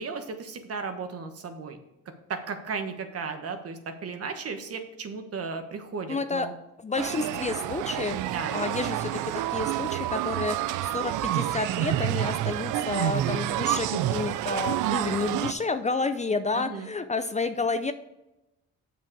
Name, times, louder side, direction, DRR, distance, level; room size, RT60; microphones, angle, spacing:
voice 1, 0.0-1.8 2.3-6.5 8.3-8.6 16.5-16.9, right 5 dB, 50° right, 7 dB, 1.2 m, -35 dB
voice 2, 6.1-6.5 6.8-8.2 8.5-9.2 9.5-10.6 10.8-17.9, left 4 dB, 25° left, 10 dB, 0.5 m, -30 dB
sound 1, 7.0-15.5, right 14 dB, 85° right, 0.5 m, -28 dB
7.5 x 6.1 x 4.8 m, 0.93 s
cardioid pair, 90°, 30 cm